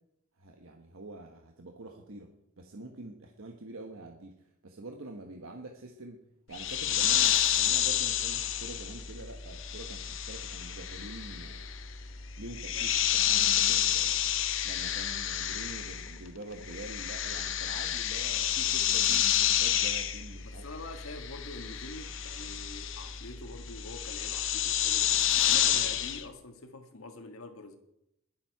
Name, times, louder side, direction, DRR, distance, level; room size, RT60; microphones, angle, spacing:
voice 1, 0.4-2.3 2.6-4.3 4.6-6.2 6.5-11.7 12.4-14.2 14.6-20.6, right 2 dB, 75° right, 1.2 m, -46 dB
sound 1, 6.5-16.3 16.5-26.2, left 10 dB, 60° left, 0.9 m, -29 dB
voice 2, 20.4-27.8, left 2 dB, 80° left, 1.7 m, -45 dB
21.0 x 7.4 x 4.7 m
head